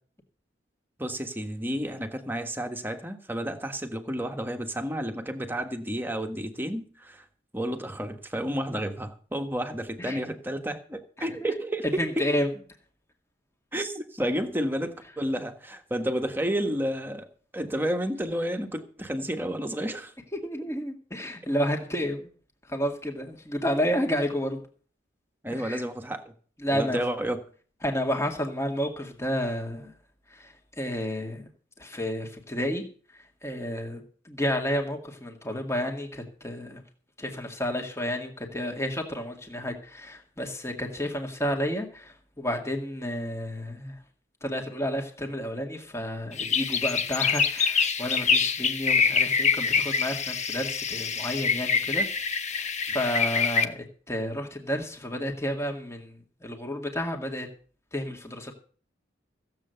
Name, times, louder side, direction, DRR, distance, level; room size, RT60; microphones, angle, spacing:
voice 1, 1.0-7.2 7.5-12.3 13.7-17.3 17.5-20.1 25.4-26.3 26.7-27.4, equal, 10° right, 5 dB, 1.4 m, -31 dB
voice 2, 11.2-11.5 11.8-12.5 20.4-22.3 22.7-24.6 25.5-25.8 26.6-27.0 27.8-29.9 30.3-31.5 31.8-32.8 33.4-36.8 37.2-44.0 44.4-52.1 52.5-57.5 57.9-58.5, equal, 15° left, 3 dB, 1.9 m, -31 dB
sound 1, 46.3-53.6, left 6 dB, 40° left, 1.0 m, -25 dB
15.0 x 7.8 x 6.9 m, 0.43 s
head